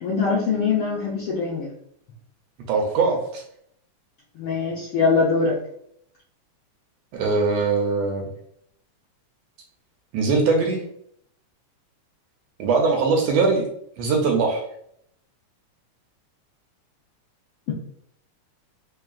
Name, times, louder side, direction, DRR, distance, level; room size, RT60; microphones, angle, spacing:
voice 1, 0.0-1.7 4.4-5.6, left 4 dB, 75° left, -4 dB, 1.2 m, -22 dB
voice 2, 2.7-3.4 7.1-8.3 10.1-10.8 12.6-13.7 14.0-14.6, right 4 dB, 75° right, 1 dB, 1.6 m, -21 dB
4.7 x 3.4 x 2.3 m, 0.70 s
omnidirectional pair, 3.4 m